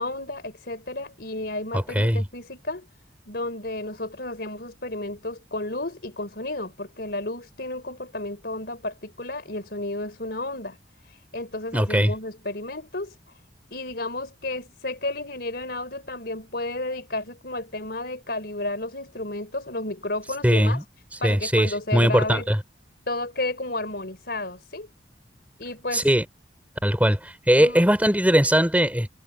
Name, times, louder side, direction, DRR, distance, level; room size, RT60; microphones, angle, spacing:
voice 1, 0.0-2.9 3.3-10.8 11.0-13.2 13.7-20.8 21.2-22.5 23.1-24.9 25.6-26.1 27.6-27.8, left 2 dB, 60° left, 4.7 m, -32 dB
voice 2, 1.7-2.2 11.7-12.1 20.4-20.8 21.2-22.6 25.9-26.2 26.8-29.1, equal, 10° right, 4.3 m, -20 dB
head